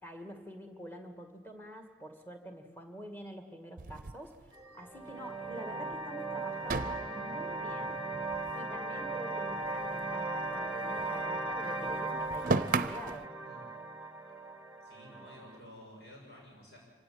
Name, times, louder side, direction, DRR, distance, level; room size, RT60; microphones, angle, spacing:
voice 1, 0.0-8.0 8.5-13.3, equal, 10° left, 5 dB, 2.1 m, -47 dB
sound 1, 3.8-5.1 5.4-5.5 5.8-6.0 6.6-9.1 9.4-11.2 11.5-13.2, right 3 dB, 50° right, 0.7 m, -37 dB
sound 2, 4.5-15.6, right 2 dB, 10° right, 1.0 m, -37 dB
voice 2, 14.8-16.8, left 1 dB, 80° left, -2 dB, 6.8 m, -52 dB
26.0 x 16.5 x 8.6 m, 1.3 s
head